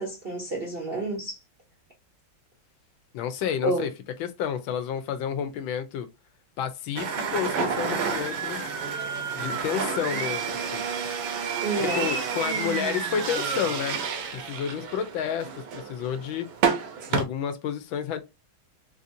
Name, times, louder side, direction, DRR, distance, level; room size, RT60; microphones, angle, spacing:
voice 1, 0.0-1.4 3.6-3.9 11.6-12.1, right 2 dB, 60° right, 0.6 m, -29 dB
voice 2, 3.1-3.9 4.2-6.1 6.6-8.6 9.3-10.8 11.8-14.0 14.3-16.5 17.1-18.2, left 8 dB, 80° left, 1.4 m, -30 dB
sound 1, 7.0-17.2, right 6 dB, 80° right, 1.5 m, -30 dB
4.0 x 2.6 x 2.6 m
omnidirectional pair, 2.2 m